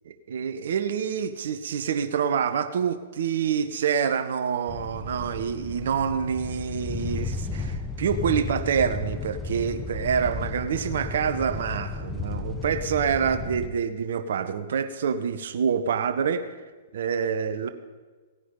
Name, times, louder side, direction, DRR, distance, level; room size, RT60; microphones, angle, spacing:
voice 1, 0.1-16.5 16.9-17.7, right 7 dB, 55° right, 11 dB, 1.0 m, -27 dB
sound 1, 4.7-13.7, left 4 dB, 15° left, 0.8 m, -34 dB
18.0 x 9.6 x 3.9 m, 1.4 s
figure-of-eight pair, 110°, 0 cm